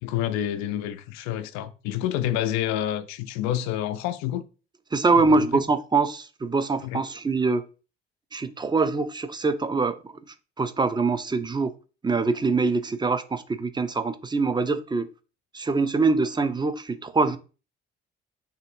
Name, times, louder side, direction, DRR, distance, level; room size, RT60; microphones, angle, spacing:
voice 1, 0.0-4.4 5.1-5.6 6.8-7.0, left 11 dB, 70° left, 0.5 m, -28 dB
voice 2, 4.9-7.6 8.3-10.1 10.6-11.7 12.0-15.1 15.5-17.4, right 3 dB, 15° right, 0.5 m, -24 dB
3.1 x 2.7 x 4.3 m
hypercardioid pair, 50°, 29 cm